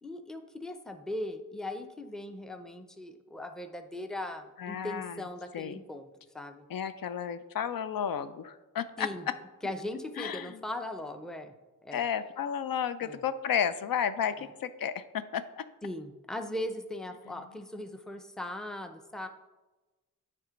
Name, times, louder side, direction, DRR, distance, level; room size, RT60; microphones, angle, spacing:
voice 1, 0.0-6.0 6.3-6.6 9.0-9.3 9.6-11.5 11.8-12.0 13.0-13.2 14.4-14.5 15.8-19.3, left 1 dB, ahead, 7 dB, 0.5 m, -39 dB
voice 2, 4.6-5.3 5.5-5.8 6.7-9.3 10.2-10.6 11.9-15.6, left 8 dB, 80° left, 13 dB, 0.5 m, -32 dB
9.4 x 3.5 x 5.0 m, 1.1 s
wide cardioid pair, 105°, 34 cm